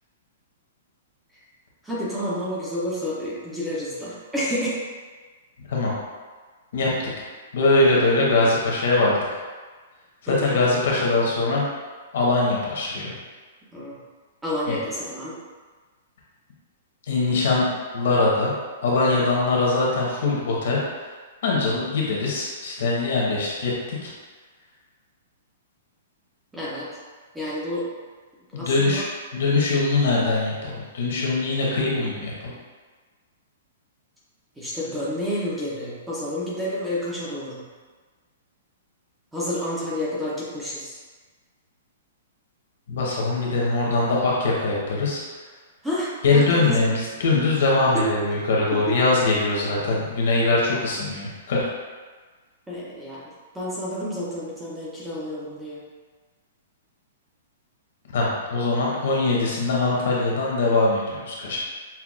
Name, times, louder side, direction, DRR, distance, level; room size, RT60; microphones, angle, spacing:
voice 1, 1.8-4.8 10.3-10.6 13.7-14.0 14.4-15.4 26.5-26.9 27.3-27.9 28.5-29.0 34.6-37.6 39.3-41.0 45.8-47.0 47.9-48.1 48.7-49.0 52.7-53.2 53.5-55.8, equal, 5° right, -8 dB, 0.5 m, -29 dB
voice 2, 6.7-7.1 7.5-9.2 10.2-11.6 12.1-13.1 14.7-14.8 17.1-17.7 17.9-18.5 18.8-21.0 21.4-24.1 28.5-29.0 29.3-32.5 42.9-45.2 46.2-51.7 58.1-61.6, left 3 dB, 60° left, -3 dB, 0.9 m, -22 dB
5.7 x 2.2 x 2.4 m, 1.4 s
hypercardioid pair, 175°, 0 cm